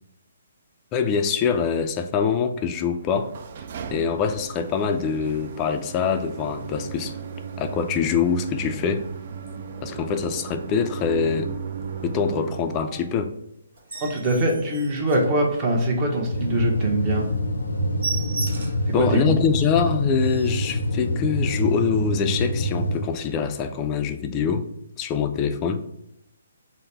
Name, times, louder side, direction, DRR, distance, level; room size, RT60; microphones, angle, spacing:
voice 1, 0.9-3.3 3.9-7.1 7.6-9.1 9.8-11.5 12.0-13.3 18.9-24.7 25.0-25.8, left 6 dB, 25° left, 8 dB, 0.4 m, -24 dB
sound 1, 3.0-13.3, right 6 dB, 50° right, 0.4 m, -36 dB
sound 2, 13.7-15.9 16.3-16.5 16.8-16.9 17.2-17.4 17.6-18.9 19.4-19.5 19.9-20.0 20.2-20.7 21.4-21.6, right 4 dB, 70° right, 0.9 m, -35 dB
voice 2, 14.0-17.3 19.0-19.3, right 1 dB, 30° right, 0 dB, 0.9 m, -23 dB
sound 3, 16.3-23.0, equal, 90° left, 0.6 m, -26 dB
3.8 x 2.1 x 4.4 m, 0.80 s
hypercardioid pair, 150°, 0 cm